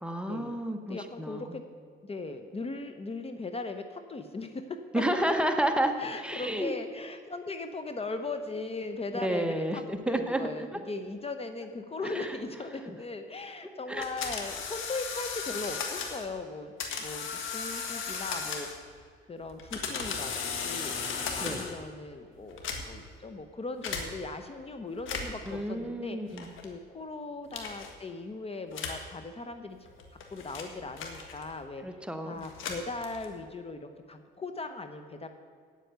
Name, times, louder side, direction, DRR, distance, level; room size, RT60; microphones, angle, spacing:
voice 1, 0.0-1.6 4.9-6.7 9.1-10.4 12.0-12.4 13.9-14.0 21.4-21.6 25.5-26.5 31.8-32.5, right 1 dB, 5° right, 5 dB, 1.0 m, -31 dB
voice 2, 0.9-1.6 2.0-5.0 6.0-9.8 10.1-16.7 17.0-18.7 19.3-20.9 21.3-29.8 30.3-35.3, left 3 dB, 30° left, 8 dB, 0.9 m, -39 dB
sound 1, 14.0-16.3 16.8-18.9 19.5-21.8 22.5-23.1 23.8-24.1 24.9-25.5 26.4-26.7 27.5-27.9 28.7-29.1 29.9-31.6 32.4-33.4, left 5 dB, 85° left, 1.6 m, -36 dB
9.1 x 8.1 x 8.0 m, 2.1 s
cardioid pair, 90°, 20 cm